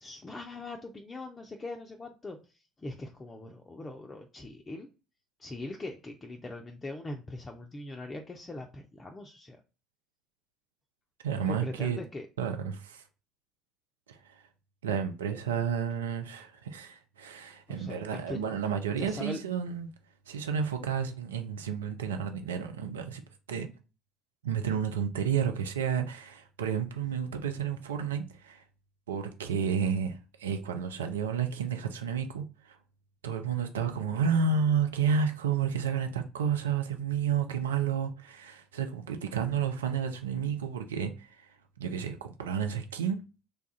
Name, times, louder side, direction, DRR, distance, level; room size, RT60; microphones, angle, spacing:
voice 1, 0.0-4.9 5.4-9.6 11.5-12.3 17.7-18.6 19.0-19.4, left 2 dB, 25° left, 0.5 m, -41 dB
voice 2, 11.2-12.0 12.4-13.0 14.1-14.4 14.8-19.9 20.3-23.2 23.5-23.7 24.4-28.6 29.1-32.8 33.2-43.2, right 7 dB, 80° right, 0.4 m, -31 dB
3.3 x 2.3 x 3.9 m
figure-of-eight pair, 60°, 0 cm